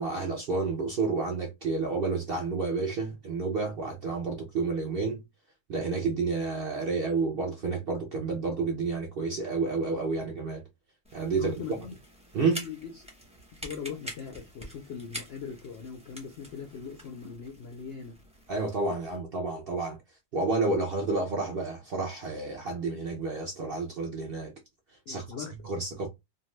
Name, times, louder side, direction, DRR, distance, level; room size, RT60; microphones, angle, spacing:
voice 1, 0.0-5.2 5.7-10.6 11.1-11.6 12.3-12.7 18.5-20.0 20.3-24.5 25.1-25.3 25.6-26.1, right 3 dB, 60° right, 0.6 m, -30 dB
sound 1, 11.0-19.2, equal, 5° right, 0.5 m, -46 dB
voice 2, 11.4-12.0 12.6-13.1 13.5-18.2 25.1-25.5, left 6 dB, 70° left, 0.6 m, -40 dB
2.6 x 2.3 x 3.1 m
omnidirectional pair, 1.6 m